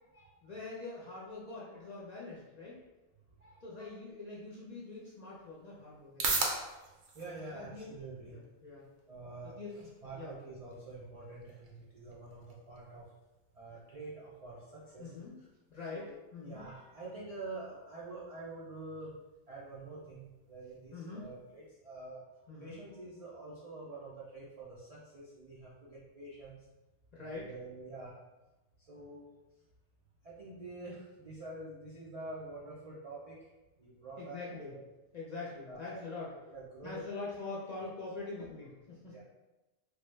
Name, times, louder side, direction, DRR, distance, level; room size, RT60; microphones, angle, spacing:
voice 1, 0.4-2.8 3.6-6.4 7.5-8.0 8.3-8.9 9.4-10.3 15.0-15.4 15.7-16.6 20.9-21.3 22.5-22.8 27.1-27.5 34.2-34.7 35.1-36.3 36.8-39.1, left 3 dB, 45° left, -6 dB, 0.6 m, -44 dB
voice 2, 3.4-3.9 6.7-6.9 7.1-8.4 9.1-9.6 10.0-13.1 13.5-15.5 15.9-19.2 19.5-22.2 22.6-26.7 27.2-28.1 28.8-29.3 30.2-33.5 33.8-34.4 34.7-34.8 35.7-36.0 36.5-37.0 38.4-38.5 39.1-39.2, right 2 dB, 50° right, -7 dB, 0.4 m, -47 dB
sound 1, 4.7-21.7, right 3 dB, 70° right, 0.8 m, -44 dB
3.0 x 2.1 x 3.1 m, 1.1 s
omnidirectional pair, 1.2 m